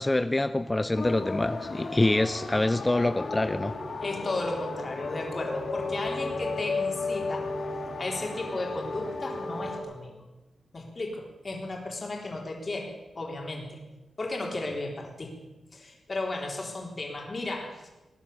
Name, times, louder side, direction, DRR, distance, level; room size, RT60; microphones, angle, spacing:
voice 1, 0.0-3.8, left 2 dB, 15° left, 12 dB, 0.5 m, -25 dB
sound 1, 1.0-9.8, left 3 dB, 50° left, 2.7 m, -34 dB
voice 2, 4.0-7.5 8.0-10.2 10.7-13.8 14.2-15.4 15.7-17.9, left 2 dB, 35° left, 0 dB, 3.8 m, -34 dB
19.5 x 10.0 x 7.2 m, 1.1 s
wide cardioid pair, 110°, 0 cm